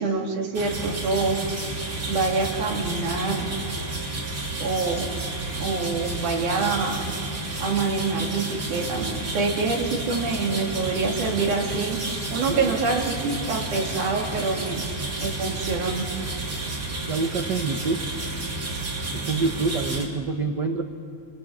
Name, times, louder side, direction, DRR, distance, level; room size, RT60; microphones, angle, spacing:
voice 1, 0.0-1.4 2.1-3.5 4.6-5.1 5.6-7.1 7.6-12.0 12.3-14.9 15.2-16.1, right 4 dB, 80° right, 0 dB, 4.1 m, -26 dB
sound 1, 0.5-20.0, right 2 dB, 30° right, 2.8 m, -31 dB
voice 2, 12.4-12.8 17.1-18.1 19.1-20.8, right 4 dB, 55° right, 5 dB, 1.2 m, -27 dB
29.0 x 27.0 x 7.2 m, 2.3 s
omnidirectional pair, 3.4 m